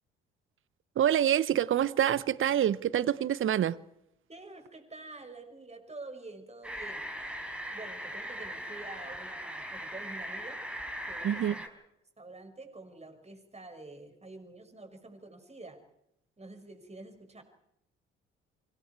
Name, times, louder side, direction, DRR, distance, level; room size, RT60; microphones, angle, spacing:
voice 1, 1.0-3.8 11.2-11.5, right 10 dB, 45° right, 1.0 m, -26 dB
voice 2, 4.3-7.0 7.7-10.6 11.1-11.8 12.2-15.8 16.4-17.4, right 2 dB, 20° right, 6.0 m, -47 dB
sound 1, 6.6-11.7, equal, 5° right, 4.6 m, -39 dB
29.5 x 25.0 x 4.8 m
figure-of-eight pair, 45°, 30 cm